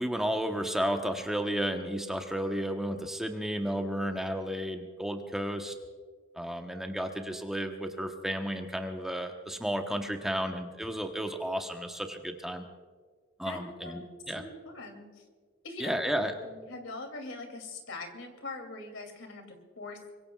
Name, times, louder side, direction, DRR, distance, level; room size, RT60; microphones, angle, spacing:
voice 1, 0.0-5.7 6.4-12.6 13.4-14.4 15.8-16.3, equal, ahead, 3 dB, 1.0 m, -32 dB
voice 2, 13.4-14.1 14.3-15.2 15.6-20.1, left 2 dB, 80° left, 4 dB, 2.8 m, -42 dB
25.0 x 22.5 x 2.4 m, 1.5 s
head